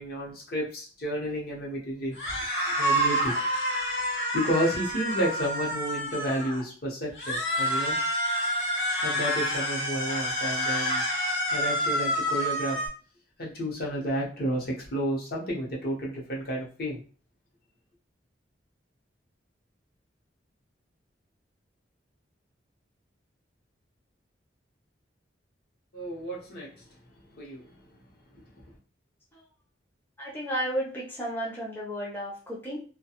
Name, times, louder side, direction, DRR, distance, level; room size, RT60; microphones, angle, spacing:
voice 1, 0.0-2.4 2.8-3.3 4.3-7.9 9.0-11.0 11.5-12.8 13.4-17.0 25.9-26.8 27.4-27.6, equal, 55° left, -3 dB, 0.8 m, -31 dB
sound 1, 2.1-6.6 7.1-12.9, equal, 85° left, 1.0 m, -28 dB
voice 2, 30.2-32.8, equal, 10° left, -5 dB, 0.5 m, -33 dB
2.3 x 2.2 x 2.8 m, 0.39 s
head